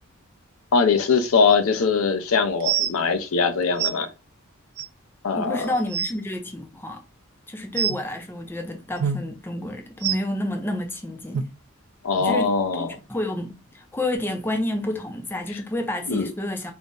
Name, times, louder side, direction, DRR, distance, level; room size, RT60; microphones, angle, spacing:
voice 1, 0.7-4.1 5.2-5.8 12.0-12.9 15.5-15.6 16.1-16.3, left 5 dB, 75° left, 0.5 m, -21 dB
sound 1, 1.5-1.6 2.6-2.9 3.8-3.9 4.8-4.9 5.4-5.5 5.8-6.1 7.8-8.0 9.0-9.2 10.0-10.2 11.3-11.4 12.2-12.3 13.0-13.1, right 8 dB, 75° right, 0.3 m, -25 dB
voice 2, 5.3-7.0 7.5-11.5 12.2-16.7, left 1 dB, 10° left, 0.4 m, -30 dB
2.6 x 2.0 x 3.6 m
head